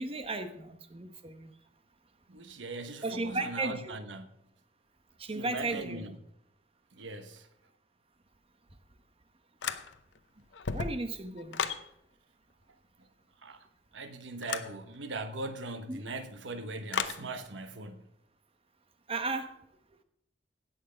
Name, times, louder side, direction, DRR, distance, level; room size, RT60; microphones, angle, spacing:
voice 1, 0.0-1.5 3.0-3.9 5.2-6.1 10.7-11.7 15.9-16.1 19.1-19.6, right 3 dB, 30° right, 1.0 m, -35 dB
voice 2, 2.3-4.3 5.3-6.2 6.9-7.5 13.4-13.7 13.9-18.1, right 2 dB, 85° right, 1.1 m, -40 dB
sound 1, 9.6-10.2 10.5-11.9 14.4-14.7 16.9-17.2, left 6 dB, 80° left, 0.7 m, -34 dB
17.0 x 6.5 x 5.0 m
head